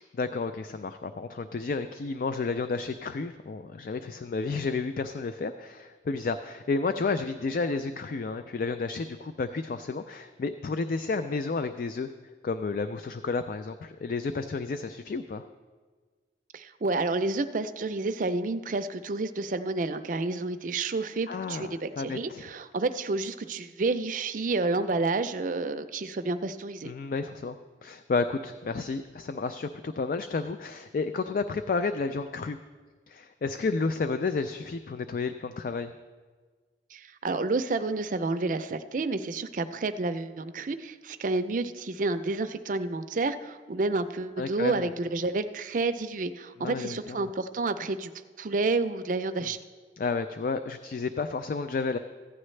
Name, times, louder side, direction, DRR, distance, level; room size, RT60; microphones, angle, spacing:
voice 1, 0.0-12.1 12.4-15.4 21.3-22.4 26.8-27.6 27.8-32.6 33.1-35.9 44.4-44.9 46.6-47.3 49.4-49.5 50.0-52.0, left 4 dB, 50° left, 9 dB, 0.3 m, -31 dB
voice 2, 16.5-26.9 36.9-48.1 48.4-49.6, right 3 dB, 45° right, 9 dB, 0.4 m, -30 dB
15.0 x 9.9 x 3.2 m, 1.4 s
head